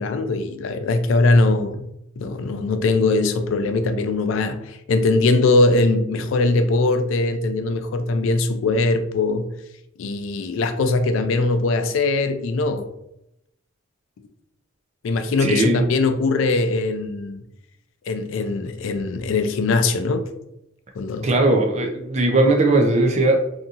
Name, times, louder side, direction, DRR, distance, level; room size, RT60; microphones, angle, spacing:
voice 1, 0.0-1.9 2.2-9.5 10.0-12.9 15.0-17.4 18.1-20.3 21.0-21.3, left 3 dB, 70° left, 8 dB, 0.3 m, -21 dB
voice 2, 15.4-15.8 21.2-23.4, right 2 dB, 35° right, 3 dB, 0.4 m, -18 dB
2.7 x 2.6 x 2.4 m, 0.81 s
head